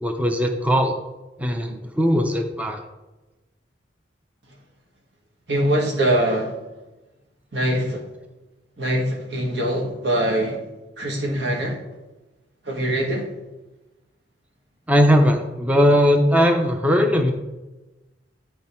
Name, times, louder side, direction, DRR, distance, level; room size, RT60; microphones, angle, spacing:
voice 1, 0.0-0.9 1.4-2.8 14.9-17.3, equal, 10° right, 4 dB, 0.6 m, -19 dB
voice 2, 5.5-6.5 7.5-8.0 8.8-10.6 11.0-11.8 12.7-13.3, right 1 dB, 80° right, 1 dB, 1.6 m, -23 dB
10.0 x 4.3 x 4.3 m, 1.1 s
head